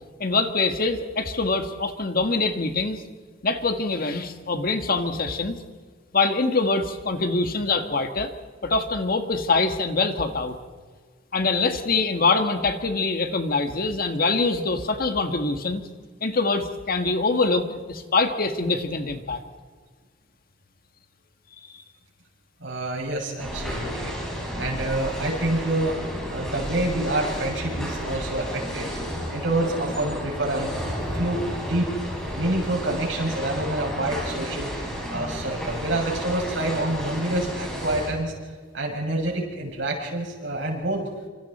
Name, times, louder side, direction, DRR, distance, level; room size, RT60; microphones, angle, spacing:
voice 1, 0.2-3.0 3.4-5.6 6.1-8.3 8.6-10.6 11.3-15.8 16.2-19.4, left 3 dB, 50° left, 7 dB, 1.8 m, -24 dB
voice 2, 22.6-24.1 24.5-26.0 26.3-28.9 29.3-30.7 31.1-31.9 32.3-34.7 35.1-38.3 38.7-41.1, right 1 dB, 75° right, -1 dB, 7.0 m, -27 dB
sound 1, 23.4-38.1, equal, 5° left, 6.9 m, -32 dB
28.0 x 26.5 x 4.4 m, 1.5 s
head